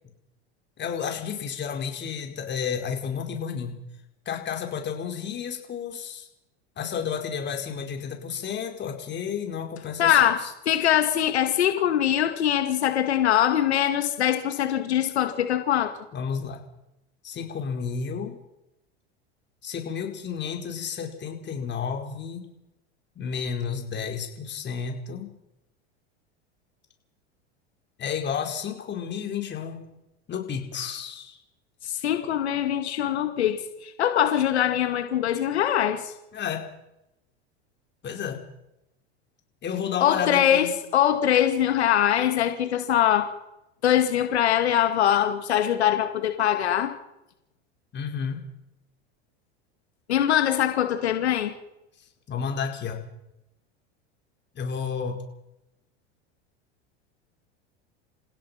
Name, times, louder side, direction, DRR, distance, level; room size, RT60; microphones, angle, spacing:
voice 1, 0.8-3.8 4.2-6.3 6.8-10.5 16.1-16.6 17.2-18.4 19.6-22.4 23.1-25.3 28.0-29.8 30.3-31.4 36.3-36.7 38.0-38.4 39.6-40.7 47.9-48.4 52.3-53.0 54.5-55.2, left 7 dB, 35° left, 3 dB, 4.9 m, -31 dB
voice 2, 10.0-10.4 10.7-15.9 31.8-36.1 40.0-43.3 43.8-46.9 50.1-51.5, left 10 dB, 85° left, 7 dB, 2.2 m, -22 dB
28.5 x 16.5 x 5.9 m, 0.86 s
hypercardioid pair, 100°, 32 cm